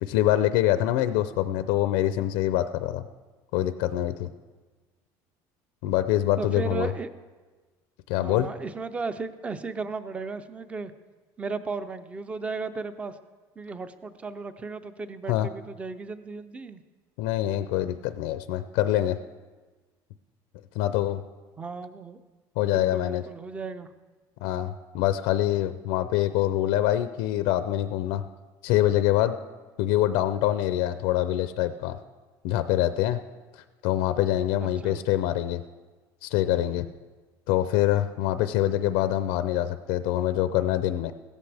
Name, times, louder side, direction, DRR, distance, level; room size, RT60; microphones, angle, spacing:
voice 1, 0.0-3.0 3.5-4.3 5.8-6.9 8.1-8.5 15.3-15.5 17.2-19.2 20.7-21.2 22.6-23.2 24.4-28.2 28.6-29.4 29.8-32.0 32.4-33.2 33.8-35.6 36.2-36.9 37.5-41.1, left 13 dB, 85° left, 11 dB, 0.5 m, -25 dB
voice 2, 6.4-7.1 8.2-10.9 11.4-13.2 13.6-16.8 21.6-22.2 22.7-23.9 34.6-35.0, right 4 dB, 15° right, 12 dB, 0.4 m, -35 dB
16.5 x 13.5 x 3.4 m, 1.3 s
cardioid pair, 170°, 9 cm